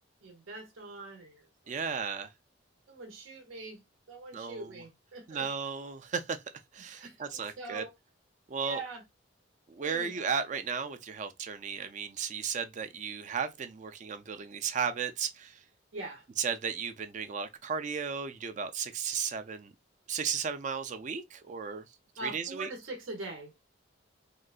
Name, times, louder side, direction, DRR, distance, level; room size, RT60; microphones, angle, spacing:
voice 1, 0.2-1.5 1.9-2.3 2.9-3.8 4.1-5.5 6.8-7.9 8.6-9.0 9.8-10.1 15.9-16.2 22.2-23.6, right 2 dB, 85° right, 0.9 m, -43 dB
voice 2, 1.7-2.3 4.3-4.7 5.3-6.4 6.7-7.8 8.5-8.8 9.7-15.6 16.4-19.7 20.1-21.9 22.2-22.7, right 6 dB, 40° right, 0.3 m, -35 dB
3.8 x 2.2 x 2.3 m
head